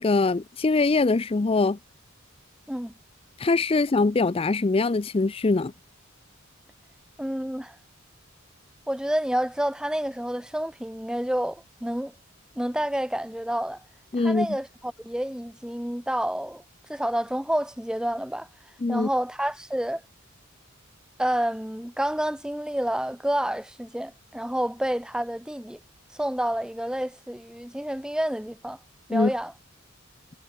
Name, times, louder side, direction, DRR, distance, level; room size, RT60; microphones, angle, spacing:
voice 1, 0.0-1.8 3.4-5.7 14.1-14.5 18.8-19.1 29.1-29.3, left 3 dB, 25° left, 0.4 m, -23 dB
voice 2, 7.2-7.8 8.9-12.1 12.6-13.8 14.2-16.6 16.9-18.5 18.9-20.0 21.2-25.8 26.2-28.8 29.1-29.5, right 1 dB, 5° right, 0.9 m, -29 dB
head